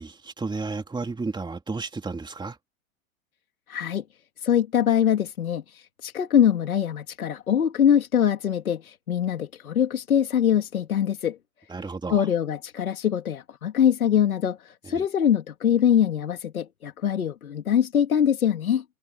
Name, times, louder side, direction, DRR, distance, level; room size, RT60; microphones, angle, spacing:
voice 1, 0.0-2.6 11.7-12.3 14.9-15.0, right 3 dB, 10° right, 3.1 m, -32 dB
voice 2, 3.7-4.0 4.4-11.4 12.1-18.8, left 9 dB, 90° left, 3.1 m, -23 dB
hypercardioid pair, 105°, 41 cm